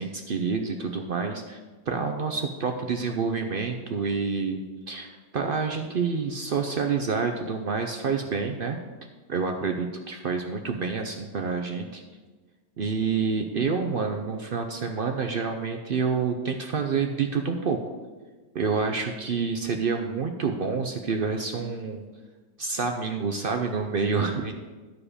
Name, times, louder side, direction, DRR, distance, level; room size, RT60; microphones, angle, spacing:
voice 1, 0.0-1.6 1.9-8.8 9.3-12.0 12.8-17.8 18.5-22.0 22.6-24.5, right 5 dB, 65° right, 4 dB, 0.5 m, -28 dB
12.5 x 5.0 x 4.9 m, 1.3 s
omnidirectional pair, 1.7 m